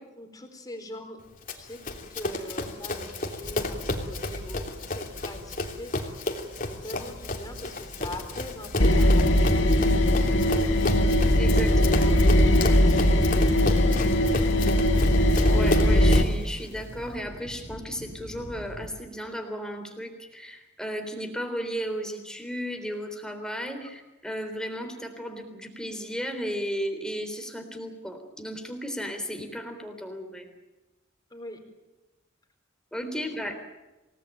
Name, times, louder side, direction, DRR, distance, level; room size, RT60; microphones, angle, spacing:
voice 1, 0.2-1.2 1.5-6.3 6.6-10.7 11.6-11.9 12.7-14.7 31.3-31.6 33.4-33.5, left 1 dB, 20° left, 5 dB, 4.4 m, -43 dB
Run, 1.5-16.4, left 2 dB, 40° left, 3.2 m, -33 dB
sound 1, 3.4-18.9, equal, 75° right, 7.9 m, -44 dB
sound 2, 8.8-16.2, left 1 dB, 65° left, 2.2 m, -20 dB
voice 2, 11.3-12.2 15.5-30.5 32.9-33.6, equal, 5° left, 5 dB, 3.7 m, -34 dB
28.0 x 18.5 x 9.2 m, 1.1 s
head